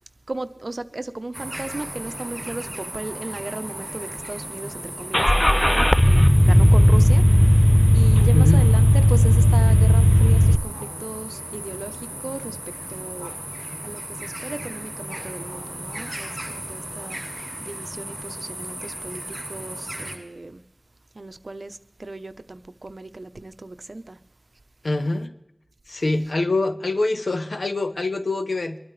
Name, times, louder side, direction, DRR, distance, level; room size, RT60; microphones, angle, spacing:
voice 1, 0.3-20.6 21.1-24.2 26.1-26.3, right 2 dB, 65° right, 0.8 m, -36 dB
sound 1, 1.3-20.2, right 1 dB, 20° right, 7.5 m, -35 dB
Car / Engine starting, 5.1-10.6, equal, 10° left, 0.4 m, -15 dB
voice 2, 8.3-8.6 24.8-25.3 25.9-28.8, left 2 dB, 90° left, 1.1 m, -24 dB
24.0 x 12.5 x 3.3 m
wide cardioid pair, 60°, 0 cm